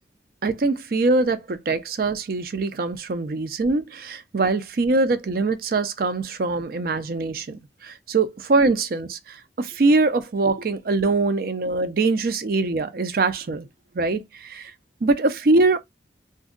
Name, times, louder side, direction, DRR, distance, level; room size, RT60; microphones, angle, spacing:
voice 1, 0.4-13.7 13.9-14.7 15.0-15.8, right 3 dB, 55° right, 0.4 m, -23 dB
2.6 x 2.2 x 3.6 m
head